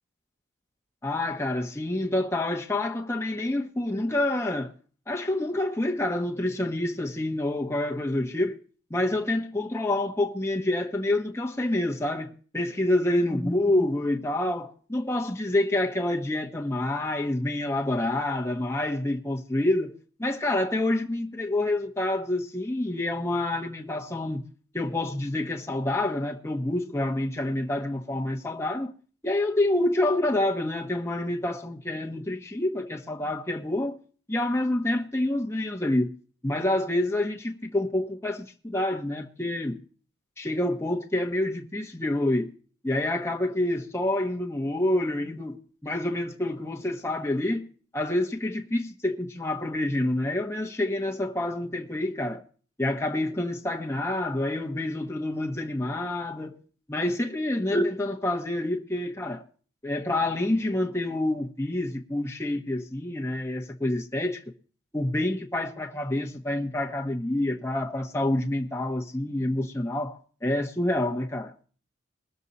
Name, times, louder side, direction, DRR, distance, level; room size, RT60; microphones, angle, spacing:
voice 1, 1.0-4.7 5.1-8.6 8.9-19.9 20.2-24.4 24.7-28.9 29.2-33.9 34.3-36.1 36.4-39.8 40.4-42.5 42.8-45.6 45.8-47.7 47.9-52.4 52.8-56.6 56.9-59.4 59.8-64.4 64.9-71.5, left 1 dB, 15° left, 1.2 m, -27 dB
21.0 x 7.3 x 4.1 m
head